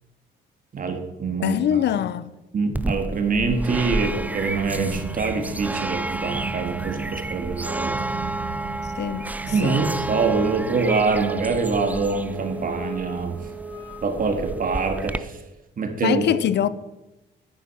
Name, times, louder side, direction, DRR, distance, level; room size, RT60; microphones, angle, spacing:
voice 1, 0.7-1.6 2.5-8.0 9.5-13.4 14.0-15.4 15.8-16.2, right 4 dB, 45° right, 1.8 m, -25 dB
voice 2, 1.4-2.3 8.8-9.8 16.0-16.7, left 10 dB, 60° left, 0.6 m, -24 dB
sound 1, 2.7-15.2, right 2 dB, 10° right, 0.4 m, -31 dB
sound 2, 4.6-10.9, right 6 dB, 70° right, 1.8 m, -36 dB
sound 3, 10.8-15.2, right 2 dB, 25° left, 3.3 m, -36 dB
9.5 x 8.0 x 5.6 m
cardioid pair, 90°, 20 cm